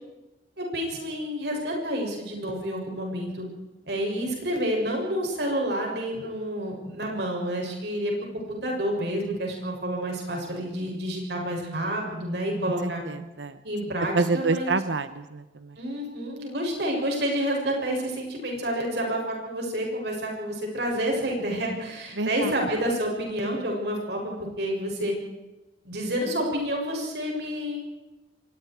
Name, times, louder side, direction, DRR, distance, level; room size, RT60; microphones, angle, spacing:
voice 1, 0.6-3.4 3.9-13.0 13.6-14.7 15.8-25.1 25.8-27.8, equal, 65° right, 0 dB, 7.2 m, -29 dB
voice 2, 12.8-13.6 14.1-15.8 22.1-22.5, right 3 dB, 90° right, 12 dB, 1.0 m, -28 dB
27.0 x 23.5 x 4.8 m, 1.0 s
head